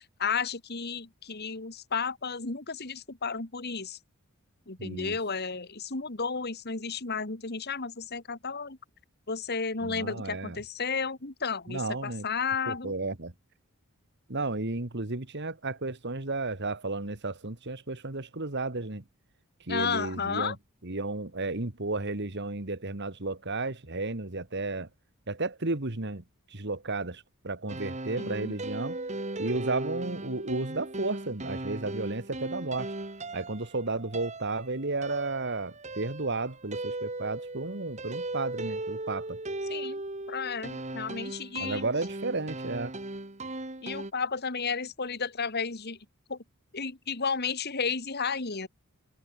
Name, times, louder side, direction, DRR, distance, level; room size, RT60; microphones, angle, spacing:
voice 1, 0.0-4.0 4.7-8.8 9.3-12.9 19.7-20.6 28.1-28.6 39.7-40.0 40.3-41.8 43.8-46.0 46.3-46.4 46.7-48.7, left 5 dB, 50° left, 2.0 m, -33 dB
voice 2, 4.8-5.2 9.8-10.6 11.7-12.3 12.7-13.3 14.3-19.0 19.7-20.6 20.8-24.9 25.3-26.2 26.5-29.0 29.4-32.9 33.3-39.4 41.6-42.9, right 3 dB, 55° right, 2.0 m, -33 dB
sound 1, 27.7-44.1, right 2 dB, 35° right, 2.2 m, -37 dB
head